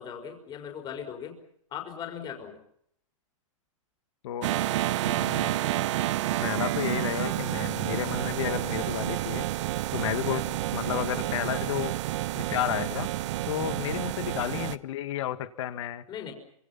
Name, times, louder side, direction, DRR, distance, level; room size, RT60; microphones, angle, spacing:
voice 1, 0.0-1.4 1.7-2.6 10.4-10.6 13.8-14.0 16.1-16.3, left 8 dB, 25° left, 3 dB, 5.2 m, -39 dB
sound 1, 4.4-14.8, right 15 dB, 60° right, 1.1 m, -29 dB
voice 2, 5.0-5.5 6.4-9.5 9.9-12.0 12.3-13.1 13.5-16.0, left 12 dB, 60° left, 10 dB, 2.1 m, -32 dB
28.0 x 26.5 x 5.8 m, 0.72 s
hypercardioid pair, 145°, 17 cm